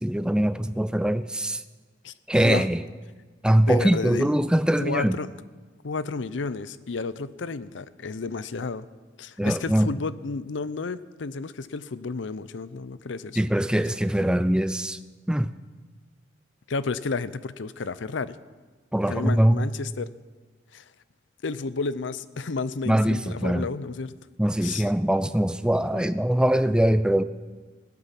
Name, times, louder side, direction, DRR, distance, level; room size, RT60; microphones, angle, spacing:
voice 1, 0.0-1.6 2.3-2.8 3.4-5.2 9.4-9.9 13.4-15.0 15.3-15.5 18.9-19.7 22.9-23.7 24.4-27.2, right 1 dB, 5° right, 12 dB, 0.4 m, -22 dB
voice 2, 3.7-4.3 4.8-5.3 5.8-8.9 9.2-13.4 16.7-18.4 19.1-20.1 20.7-20.8 21.4-24.1 24.6-24.9 25.9-26.1, left 4 dB, 75° left, 16 dB, 0.6 m, -31 dB
17.0 x 12.5 x 5.8 m, 1.4 s
head